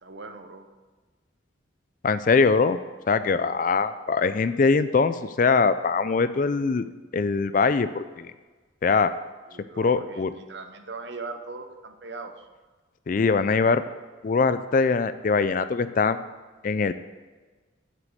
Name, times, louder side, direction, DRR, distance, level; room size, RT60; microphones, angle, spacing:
voice 1, 0.0-0.7 9.5-12.5, right 3 dB, 60° right, 7 dB, 0.8 m, -39 dB
voice 2, 2.0-2.8 3.1-6.9 7.1-8.3 8.8-9.1 9.8-10.3 13.1-13.8 14.2-16.2 16.6-16.9, left 4 dB, 45° left, 12 dB, 0.4 m, -22 dB
7.7 x 6.0 x 7.9 m, 1.3 s
head